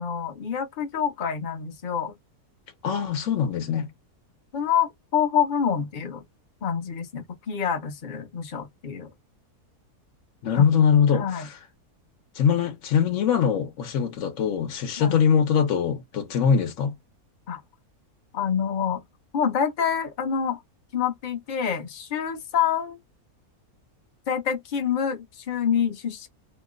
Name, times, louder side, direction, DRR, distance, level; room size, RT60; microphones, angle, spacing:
voice 1, 0.0-2.1 4.5-6.2 6.6-9.1 10.5-10.7 11.1-11.5 15.0-15.2 17.5-17.6 18.3-19.0 19.3-20.6 20.9-23.0 24.3-26.3, left 7 dB, 40° left, 0.7 m, -27 dB
voice 2, 2.8-3.9 10.4-11.5 12.3-16.9, left 7 dB, 60° left, 1.1 m, -22 dB
3.0 x 2.1 x 3.7 m
omnidirectional pair, 1.6 m